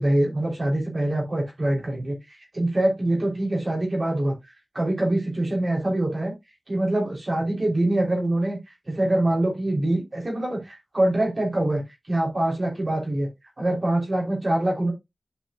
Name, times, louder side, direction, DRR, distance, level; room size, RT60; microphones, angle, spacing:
voice 1, 0.0-4.3 4.7-6.3 6.7-8.6 8.9-13.3 13.6-14.9, right 1 dB, 50° right, 0 dB, 3.2 m, -24 dB
11.0 x 5.3 x 2.3 m, 0.20 s
cardioid pair, 40°, 0 cm